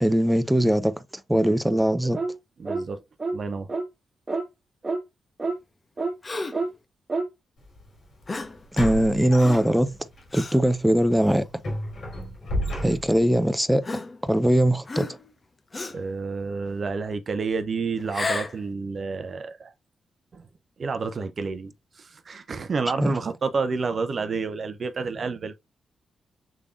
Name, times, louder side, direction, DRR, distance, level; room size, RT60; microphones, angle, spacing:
voice 1, 0.0-0.9 1.3-2.2 8.7-10.0 10.3-11.4 12.8-13.8 14.2-15.1 23.0-23.1, right 1 dB, 5° right, 0.7 m, -21 dB
voice 2, 1.3-2.1 2.6-3.0 3.3-3.7 15.9-19.7 20.3-20.4 20.8-21.7 22.0-25.5, right 4 dB, 55° right, 0.6 m, -30 dB
sound 1, 2.1-2.4 2.7-2.9 3.2-3.4 3.7-3.9 4.3-4.5 4.8-5.0 5.4-5.6 6.0-6.1 6.5-6.7 7.1-7.3, right 3 dB, 35° right, 1.4 m, -27 dB
Gasp, 6.2-6.7 8.3-8.6 9.4-9.8 10.3-10.6 11.3-11.5 12.5-12.6 13.8-14.5 14.9-15.3 15.7-16.1 18.0-18.6, left 3 dB, 40° left, 1.0 m, -33 dB
sound 2, 7.6-7.8 8.7-10.2 10.6-10.8 11.2-13.3, equal, 70° left, 3.5 m, -32 dB
6.3 x 3.4 x 2.4 m
hypercardioid pair, 45°, 0 cm